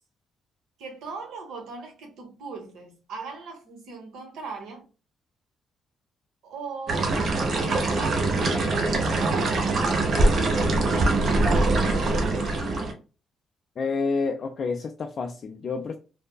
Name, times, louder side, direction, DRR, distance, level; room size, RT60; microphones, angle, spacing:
voice 1, 0.8-4.8 6.4-7.2 7.5-10.5 10.8-12.5, right 4 dB, 80° right, 1.0 m, -39 dB
sound 1, 6.9-12.9, right 2 dB, 55° right, 0.8 m, -23 dB
voice 2, 13.8-16.0, left 4 dB, 50° left, 0.3 m, -29 dB
3.2 x 2.1 x 2.3 m
cardioid pair, 90°, 0 cm